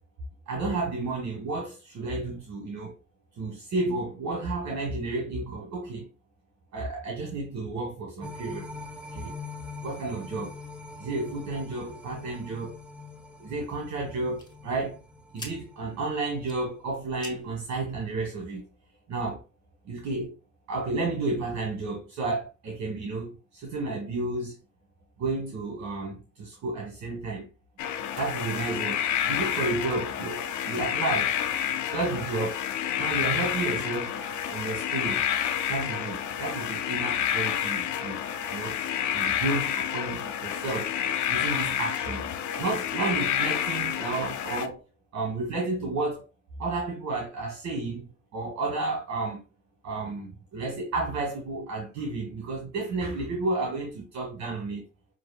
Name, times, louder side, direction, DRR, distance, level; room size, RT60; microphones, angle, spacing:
voice 1, 0.5-2.9 3.4-6.1 6.7-8.7 9.1-9.3 9.8-10.5 11.0-12.8 13.4-15.0 15.3-18.6 19.1-19.4 19.8-20.3 20.7-24.5 25.2-27.5 28.2-31.3 31.9-32.6 33.0-34.2 34.5-35.2 35.7-38.2 38.5-38.7 39.1-40.9 41.3-42.2 42.6-44.8 45.1-46.2 46.6-49.4 49.8-54.8, right 3 dB, 65° right, 1.3 m, -32 dB
sound 1, 8.2-16.6 17.0-17.1, left 3 dB, 5° right, 0.8 m, -43 dB
sound 2, 12.2-18.2, left 2 dB, 15° left, 1.7 m, -49 dB
sound 3, 27.8-44.7, left 10 dB, 75° left, 0.6 m, -29 dB
6.1 x 2.6 x 2.4 m
cardioid pair, 90°, 30 cm